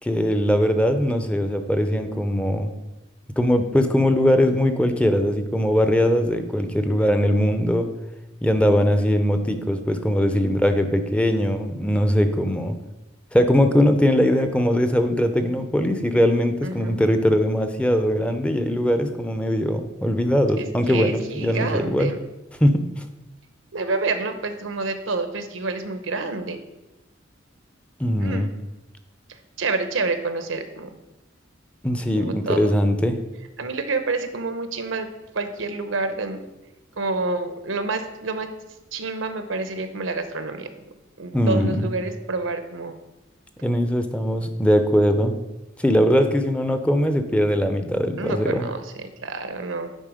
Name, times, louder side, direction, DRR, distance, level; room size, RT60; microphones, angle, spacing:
voice 1, 0.0-2.7 3.4-7.9 8.4-12.7 13.3-22.1 22.6-23.0 28.0-28.5 31.8-33.2 41.3-41.9 43.6-45.4 45.8-48.7, equal, 5° left, 7 dB, 0.5 m, -21 dB
voice 2, 16.6-17.0 20.6-22.2 23.7-26.6 28.2-28.5 29.3-31.0 32.1-32.8 33.6-35.1 35.3-36.4 37.0-38.5 38.9-40.7 41.2-42.9 48.2-49.9, right 3 dB, 85° right, 8 dB, 0.8 m, -28 dB
9.2 x 4.5 x 4.9 m, 1.0 s
head